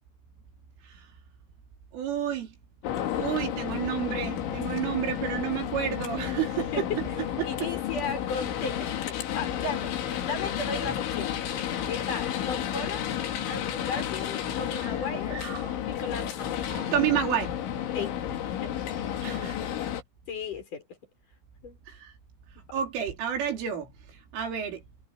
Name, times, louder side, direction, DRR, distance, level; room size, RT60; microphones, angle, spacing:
voice 1, 1.9-2.5 3.2-7.7 14.8-14.9 15.3-15.7 16.7-17.6 19.2-19.7 21.9-22.1 22.7-24.8, right 9 dB, 85° right, 6.8 m, -31 dB
sound 1, 2.8-20.0, left 10 dB, 75° left, 4.7 m, -32 dB
voice 2, 6.6-7.0 7.4-11.4 11.8-13.2 13.5-16.7 17.9-18.8 19.1-19.3 19.7-19.8 20.3-20.8 21.6-21.8 22.6-22.7, left 4 dB, 40° left, 7.7 m, -36 dB
omnidirectional pair, 5.5 m